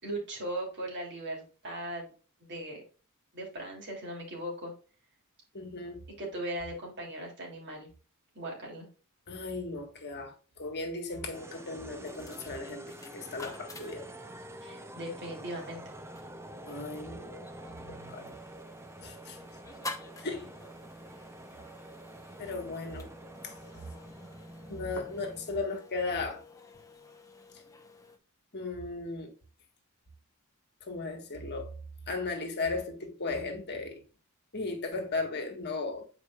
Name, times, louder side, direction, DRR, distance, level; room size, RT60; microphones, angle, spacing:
voice 1, 0.0-2.1 2.4-2.8 3.3-4.7 6.2-7.9 8.3-8.9 14.6-15.8, right 1 dB, 55° right, 2.9 m, -38 dB
voice 2, 5.5-6.0 9.3-12.8 13.1-14.1 16.6-18.3 19.0-19.4 20.2-20.5 22.4-23.1 23.4-23.6 24.7-26.4 28.5-29.3 30.8-31.7 32.1-34.0 34.5-36.1, left 3 dB, 50° left, 1.5 m, -36 dB
sound 1, 11.1-28.2, left 2 dB, 15° left, 0.9 m, -50 dB
sound 2, 11.3-25.6, right 1 dB, 10° right, 0.6 m, -47 dB
8.5 x 4.8 x 2.4 m
head